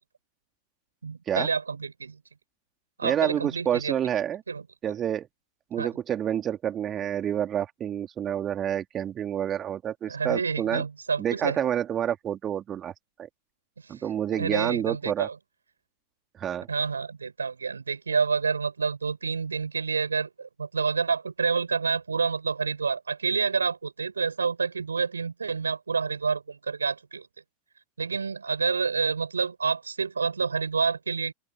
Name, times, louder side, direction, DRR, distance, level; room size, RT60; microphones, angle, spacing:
voice 1, 1.0-2.2 3.0-4.0 4.5-4.6 5.8-5.9 10.1-11.6 13.9-15.3 16.7-27.3 28.0-31.3, right 5 dB, 75° right, 4.1 m, -28 dB
voice 2, 3.0-4.4 4.8-5.3 5.7-10.8 11.2-12.9 13.2-13.3 13.9-15.3 16.4-16.7, right 10 dB, 25° right, 3.1 m, -28 dB
open air
figure-of-eight pair, 90°, 0 cm